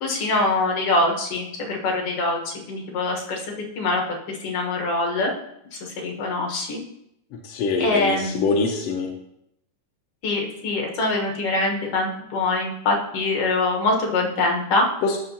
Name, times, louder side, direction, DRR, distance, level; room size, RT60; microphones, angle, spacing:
voice 1, 0.0-3.4 3.8-4.0 4.4-5.3 6.0-6.8 7.8-8.4 10.2-14.8, left 2 dB, 55° left, 0 dB, 2.0 m, -23 dB
voice 2, 7.4-9.1 15.0-15.2, left 4 dB, 75° left, 2 dB, 1.5 m, -24 dB
13.0 x 5.5 x 2.8 m, 0.77 s
omnidirectional pair, 3.6 m